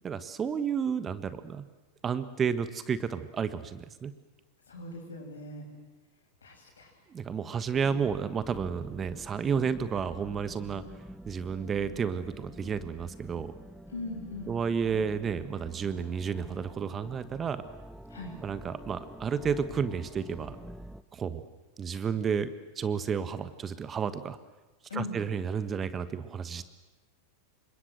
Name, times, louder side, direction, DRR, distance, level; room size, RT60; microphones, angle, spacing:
voice 1, 0.0-1.6 2.0-4.1 7.1-10.8 11.2-13.5 14.5-17.6 18.4-20.6 21.1-21.5 21.8-24.4 24.9-26.6, right 6 dB, 20° right, 12 dB, 1.4 m, -31 dB
voice 2, 4.7-5.6 6.4-6.9 13.9-14.6 18.1-18.4 22.0-22.1 24.9-25.2, left 2 dB, 70° left, 3 dB, 8.0 m, -40 dB
sound 1, 7.7-21.0, equal, ahead, 0.8 m, -47 dB
28.5 x 26.0 x 8.0 m, 1.2 s
figure-of-eight pair, 90°, 0 cm